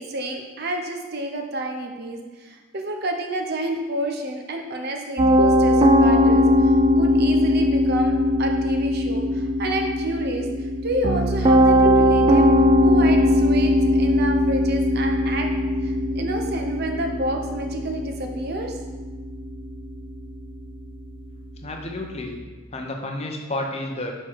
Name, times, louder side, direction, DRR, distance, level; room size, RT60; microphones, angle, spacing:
voice 1, 0.0-10.5 10.8-12.5 12.8-15.5 15.8-18.8, right 1 dB, 45° right, 3 dB, 0.7 m, -29 dB
Piano, 5.2-22.3, left 1 dB, 25° right, 0.3 m, -20 dB
voice 2, 21.6-22.4 22.7-24.1, left 1 dB, 30° left, 2 dB, 0.7 m, -30 dB
6.7 x 4.3 x 4.6 m, 1.3 s
head